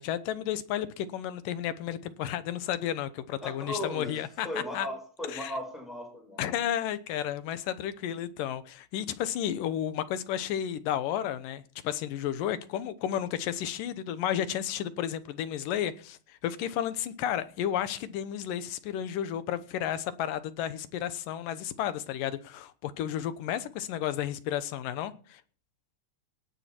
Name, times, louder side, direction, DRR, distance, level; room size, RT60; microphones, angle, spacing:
voice 1, 0.0-4.5 4.7-4.9 5.3-5.5 6.4-25.4, left 10 dB, 80° left, 2.6 m, -32 dB
voice 2, 3.4-6.5, left 1 dB, ahead, 6.6 m, -37 dB
18.0 x 10.5 x 4.5 m
omnidirectional pair, 3.9 m